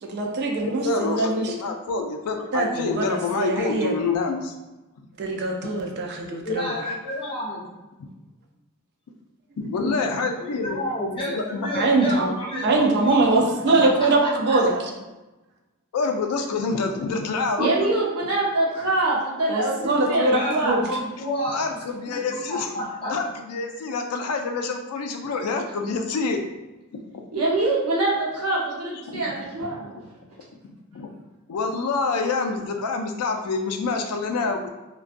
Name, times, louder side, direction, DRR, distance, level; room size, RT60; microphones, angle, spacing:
voice 1, 0.1-1.5 2.5-3.9 5.2-6.7 11.7-14.8 19.5-20.8, right 2 dB, 50° right, 2 dB, 0.4 m, -22 dB
voice 2, 0.6-4.5 8.0-8.1 9.6-10.8 11.3-11.7 15.9-17.9 21.5-22.7 23.1-26.4 27.1-27.2 29.1-29.2 29.9-30.0 30.9-31.1 31.5-34.7, left 4 dB, 85° left, 5 dB, 0.4 m, -27 dB
voice 3, 6.5-7.6 10.4-13.3 14.2-14.6 20.3-21.6 22.5-23.1, equal, 25° left, -5 dB, 0.6 m, -30 dB
voice 4, 17.6-20.9 27.3-29.9, right 2 dB, 85° right, -4 dB, 0.8 m, -24 dB
2.5 x 2.2 x 2.4 m, 1.1 s
head